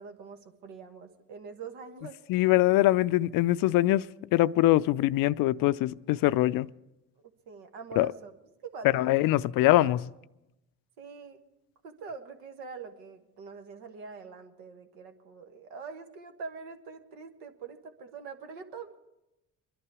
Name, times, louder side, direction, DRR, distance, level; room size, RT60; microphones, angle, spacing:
voice 1, 0.0-2.2 7.5-8.3 8.6-9.2 9.8-10.0 11.0-11.4 11.8-19.0, right 5 dB, 80° right, 1.5 m, -44 dB
voice 2, 2.3-4.0 4.3-6.7 8.0-8.1 8.9-10.0, left 16 dB, 65° left, 0.5 m, -23 dB
23.0 x 11.0 x 4.8 m
supercardioid pair, 65°, 37 cm